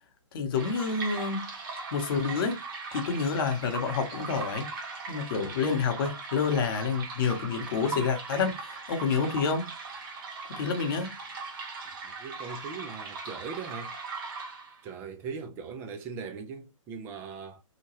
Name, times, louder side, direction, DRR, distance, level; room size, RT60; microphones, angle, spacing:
voice 1, 0.3-1.5 1.9-2.6 2.9-4.7 5.1-9.7 10.5-11.1, left 5 dB, 45° left, 0.9 m, -28 dB
sound 1, 0.5-14.9, right 4 dB, 40° right, 0.9 m, -39 dB
voice 2, 12.0-13.9 14.8-17.6, right 5 dB, 15° right, 0.3 m, -40 dB
2.9 x 2.2 x 3.0 m
hypercardioid pair, 140°, 17 cm